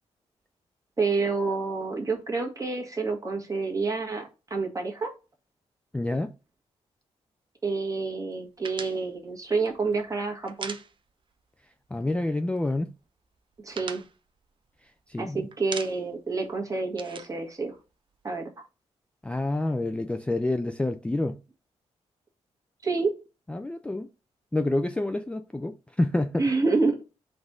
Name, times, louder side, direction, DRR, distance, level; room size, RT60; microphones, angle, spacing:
voice 1, 1.0-5.1 7.6-10.7 13.6-14.0 15.2-17.7 18.2-18.5 22.8-23.1 26.4-27.0, right 4 dB, 30° right, 1.4 m, -28 dB
voice 2, 5.9-6.3 11.9-12.9 15.1-15.5 19.2-21.4 23.5-24.1 24.5-26.4, left 2 dB, 10° left, 0.3 m, -28 dB
sound 1, 8.6-11.4 11.7-11.9 12.2-12.8 13.2-15.2 15.5-16.3 16.5-18.3, right 5 dB, 45° right, 0.6 m, -41 dB
4.0 x 2.5 x 4.7 m
cardioid pair, 70°, 12 cm